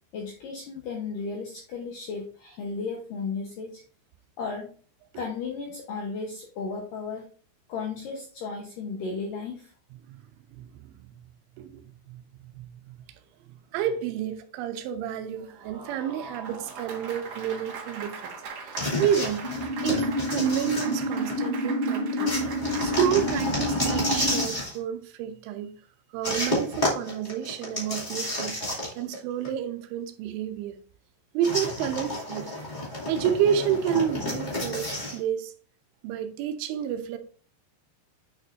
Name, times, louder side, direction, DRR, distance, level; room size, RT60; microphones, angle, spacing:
voice 1, 0.1-3.8 4.4-4.7 5.2-7.2 7.7-9.7, left 4 dB, 75° left, 2.0 m, -34 dB
voice 2, 10.5-11.1 11.6-13.0 13.7-18.3 18.7-19.5 19.8-22.4 22.8-25.7 26.1-28.6 28.9-30.8 31.3-32.5 33.1-35.5 36.0-37.2, right 9 dB, 90° right, 3.2 m, -30 dB
Applause, 15.4-24.1, right 5 dB, 60° right, 1.7 m, -40 dB
sound 1, 18.8-21.5 22.2-24.8 26.2-29.2 29.4-29.5 31.4-35.2, left 1 dB, 20° left, 1.2 m, -31 dB
sound 2, 19.4-24.4, equal, 25° right, 4.1 m, -29 dB
9.0 x 6.7 x 2.6 m
omnidirectional pair, 5.5 m